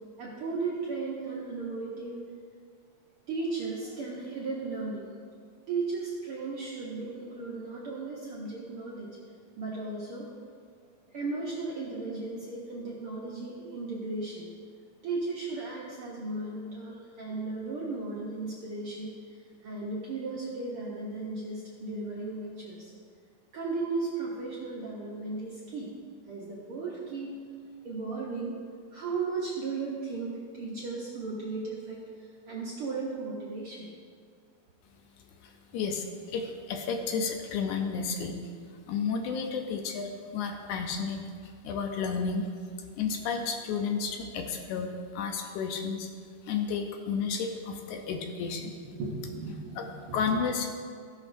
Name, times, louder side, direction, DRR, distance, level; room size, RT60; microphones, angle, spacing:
voice 1, 0.2-2.2 3.3-5.0 5.7-9.2 9.6-10.3 11.1-14.5 15.0-22.9 23.5-25.9 26.3-27.4 27.8-28.6 28.9-33.9 48.8-50.2, right 3 dB, 70° right, -5 dB, 1.3 m, -35 dB
voice 2, 35.4-38.3 38.9-42.5 42.9-48.7 49.8-49.9 50.1-50.7, left 5 dB, 75° left, 4 dB, 2.0 m, -32 dB
15.5 x 6.0 x 2.6 m, 2.1 s
omnidirectional pair, 3.7 m